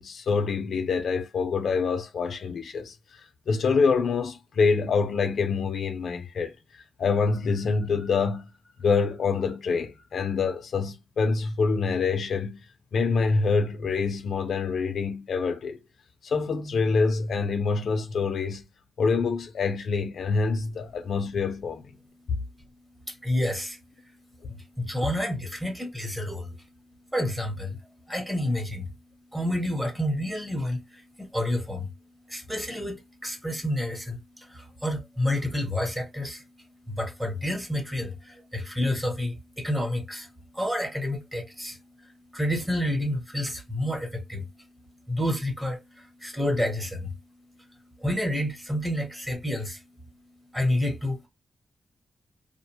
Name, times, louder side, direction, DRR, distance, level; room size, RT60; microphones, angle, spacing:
voice 1, 0.0-2.9 3.5-6.5 7.0-8.5 8.8-12.6 12.9-15.8 16.2-18.6 19.0-21.8, left 4 dB, 70° left, 0.5 m, -26 dB
voice 2, 23.1-23.8 24.5-26.6 27.1-27.8 28.1-28.9 29.3-31.9 32.3-36.4 36.9-40.3 40.5-44.5 45.1-47.1 48.0-49.8 50.5-51.3, left 1 dB, 10° right, 0.9 m, -29 dB
2.5 x 2.2 x 2.8 m
wide cardioid pair, 120°, 0 cm